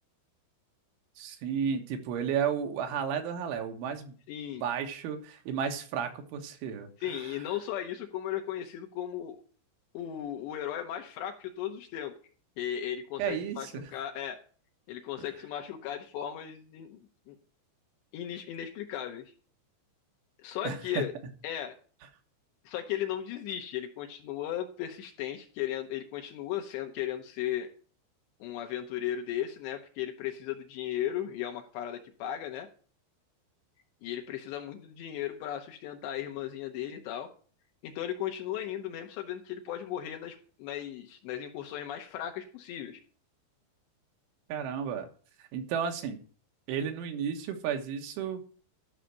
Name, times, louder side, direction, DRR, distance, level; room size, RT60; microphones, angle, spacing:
voice 1, 1.2-4.2 4.6-7.4 13.2-13.9 20.7-21.0 44.5-45.1 45.4-46.2 46.7-48.5, right 7 dB, 85° right, 4 dB, 3.8 m, -33 dB
voice 2, 4.3-4.6 7.0-9.4 9.9-12.1 12.6-14.4 14.9-17.4 18.1-19.3 20.4-21.1 21.4-21.7 22.7-27.7 28.4-32.7 34.0-37.3 37.8-43.0, left 11 dB, 75° left, 4 dB, 2.9 m, -36 dB
12.5 x 5.8 x 6.4 m, 0.41 s
omnidirectional pair, 5.5 m